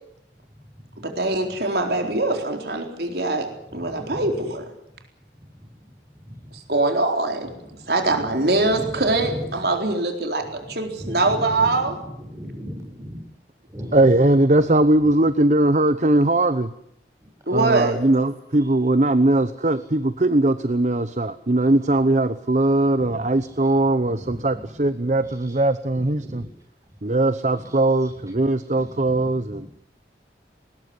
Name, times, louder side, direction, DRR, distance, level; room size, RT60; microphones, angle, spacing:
voice 1, 1.0-3.5 3.7-4.6 6.5-7.5 7.9-12.0 17.5-18.0, right 2 dB, 65° right, 4 dB, 4.1 m, -23 dB
voice 2, 3.9-4.3 5.8-5.9 8.6-9.5 10.6-10.7 11.0-13.2 13.7-13.9 24.1-24.4 26.2-26.4 28.7-28.9 29.2-29.6, equal, 20° right, 1 dB, 7.1 m, -35 dB
voice 3, 13.9-16.7 17.5-26.4 27.0-29.7, right 2 dB, 40° right, 12 dB, 0.8 m, -20 dB
20.5 x 19.5 x 9.7 m, 0.79 s
head